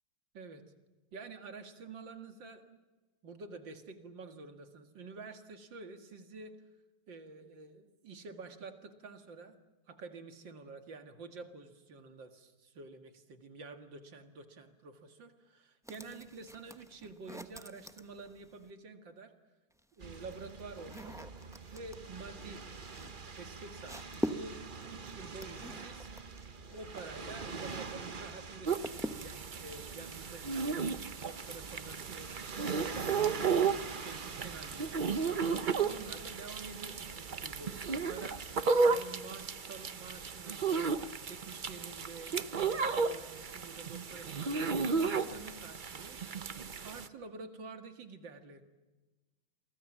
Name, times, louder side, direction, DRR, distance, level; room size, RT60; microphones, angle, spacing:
voice 1, 1.1-2.8 3.2-6.6 7.1-9.6 9.9-19.3 20.0-21.3 21.7-22.7 23.0-26.1 26.7-30.8 31.2-32.5 32.8-38.4 38.8-42.4 42.6-46.4 46.8-48.6, right 3 dB, 60° right, 7 dB, 2.6 m, -49 dB
sound 1, 15.8-18.7 19.7-28.0 28.2-29.5, equal, 5° right, 0.5 m, -44 dB
sound 2, 20.0-38.6, right 4 dB, 35° right, 0.9 m, -46 dB
sound 3, 28.7-47.1, right 5 dB, 80° right, 0.4 m, -34 dB
29.0 x 23.5 x 7.4 m, 1.2 s
omnidirectional pair, 2.3 m